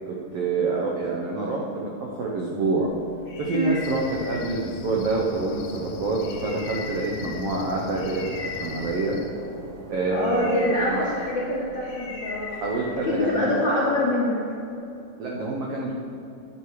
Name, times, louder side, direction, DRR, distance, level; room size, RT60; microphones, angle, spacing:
voice 1, 0.1-2.9 3.4-9.2 9.9-11.1 12.5-13.7 15.2-15.9, right 3 dB, 85° right, -2 dB, 1.3 m, -27 dB
sound 1, 2.9-13.5, left 4 dB, 50° left, 1.9 m, -40 dB
Cricket, 3.8-9.3, left 6 dB, 85° left, 2.7 m, -40 dB
sound 2, 5.5-11.3, right 1 dB, 60° right, 2.4 m, -43 dB
voice 2, 10.1-12.6 13.0-14.4, left 1 dB, 65° left, -7 dB, 1.1 m, -25 dB
10.5 x 8.1 x 4.8 m, 2.6 s
omnidirectional pair, 4.1 m